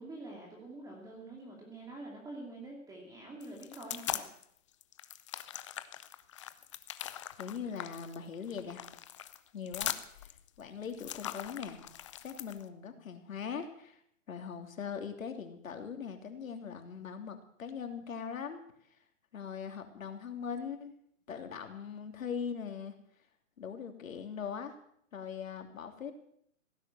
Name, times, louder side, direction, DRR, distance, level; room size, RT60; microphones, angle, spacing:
voice 1, 0.0-4.3, right 2 dB, 10° right, -1 dB, 2.7 m, -46 dB
sound 1, 3.4-4.4 4.8-12.6, left 11 dB, 25° left, 0.5 m, -41 dB
voice 2, 7.4-8.8 9.5-10.0 10.6-11.8 12.2-14.0 14.3-18.6 19.3-20.9 21.3-22.9 23.6-24.7 25.1-26.1, left 6 dB, 75° left, 6 dB, 3.2 m, -41 dB
16.5 x 10.0 x 7.7 m, 0.68 s
hypercardioid pair, 150°, 40 cm